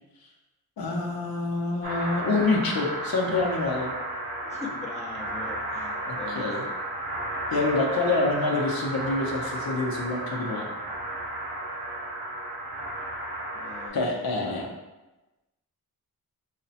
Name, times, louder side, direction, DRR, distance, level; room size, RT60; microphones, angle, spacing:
voice 1, 0.8-3.9 6.1-6.6 7.5-10.7 13.9-14.7, left 3 dB, 75° left, -1 dB, 0.7 m, -27 dB
sound 1, 1.8-13.9, right 1 dB, 75° right, 0.8 m, -33 dB
voice 2, 4.4-6.5 13.5-14.5, left 4 dB, 20° left, -2 dB, 0.6 m, -41 dB
4.8 x 2.1 x 2.7 m, 1.1 s
cardioid pair, 60°, 37 cm